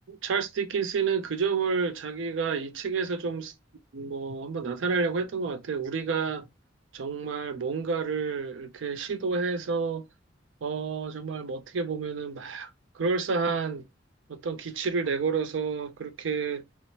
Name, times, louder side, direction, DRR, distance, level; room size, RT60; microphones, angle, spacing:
voice 1, 0.1-3.5 3.9-6.5 6.9-10.1 10.6-12.7 12.9-13.9 14.3-16.6, right 5 dB, 80° right, 0.5 m, -30 dB
3.0 x 2.1 x 2.7 m
head